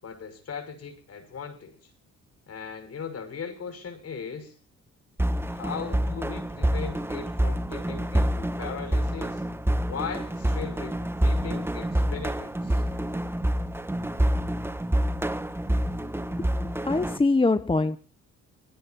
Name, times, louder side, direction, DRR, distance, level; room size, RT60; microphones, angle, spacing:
voice 1, 0.0-1.9 2.5-4.5 5.5-9.4 9.9-12.8, left 6 dB, 55° left, 9 dB, 6.4 m, -38 dB
sound 1, 5.2-17.2, right 1 dB, 10° right, 1.5 m, -27 dB
voice 2, 16.6-18.0, left 3 dB, 15° left, 11 dB, 1.1 m, -23 dB
26.5 x 19.5 x 2.6 m, 0.37 s
cardioid pair, 90°, 30 cm